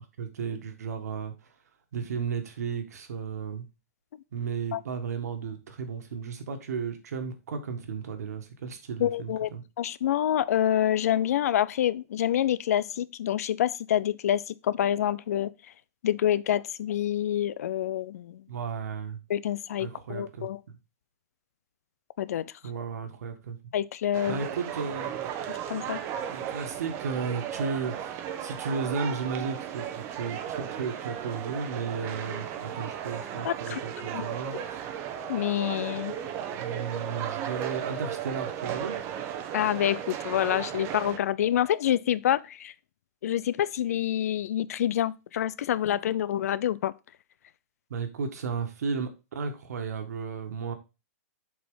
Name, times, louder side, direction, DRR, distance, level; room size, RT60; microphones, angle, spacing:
voice 1, 0.0-1.3 1.9-3.6 4.3-9.6 18.5-19.2 19.8-20.5 22.6-23.6 24.2-25.3 26.2-34.8 36.6-39.0 47.9-50.7, right 5 dB, 80° right, 1.7 m, -34 dB
voice 2, 9.0-9.5 9.8-15.5 16.0-18.4 19.3-20.6 22.2-22.5 23.7-24.4 25.5-26.0 33.4-33.8 34.1-34.2 35.3-36.1 39.5-42.7 43.2-46.9, left 11 dB, 70° left, 0.5 m, -27 dB
sound 1, 24.1-41.2, right 9 dB, 30° right, 0.8 m, -35 dB
7.5 x 4.1 x 3.8 m
hypercardioid pair, 140°, 9 cm